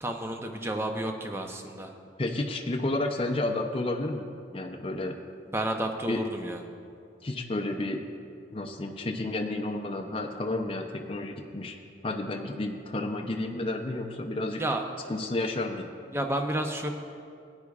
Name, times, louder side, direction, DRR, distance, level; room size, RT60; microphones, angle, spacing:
voice 1, 0.0-1.9 5.5-6.6 14.6-14.8 16.1-16.9, right 1 dB, 15° right, 4 dB, 0.6 m, -31 dB
voice 2, 2.2-4.3 4.5-5.2 6.1-6.2 7.2-8.0 8.5-11.8 12.0-14.6 15.1-15.9, left 2 dB, 30° left, 3 dB, 0.6 m, -31 dB
18.0 x 9.6 x 2.4 m, 2.3 s
head